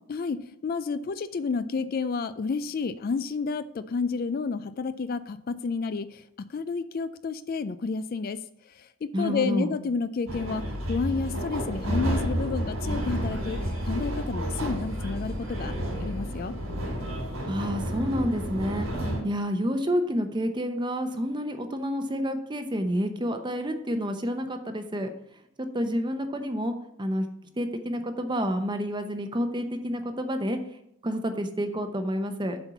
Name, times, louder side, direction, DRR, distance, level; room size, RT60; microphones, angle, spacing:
voice 1, 0.1-15.8 16.0-16.6, left 4 dB, 45° left, 13 dB, 0.3 m, -31 dB
voice 2, 9.1-9.7 17.5-25.1 25.6-27.3 27.6-30.6 31.0-32.7, equal, 20° right, 7 dB, 0.7 m, -29 dB
sound 1, 10.3-19.2, equal, 85° right, 3.7 m, -31 dB
7.7 x 4.4 x 7.0 m, 0.77 s
head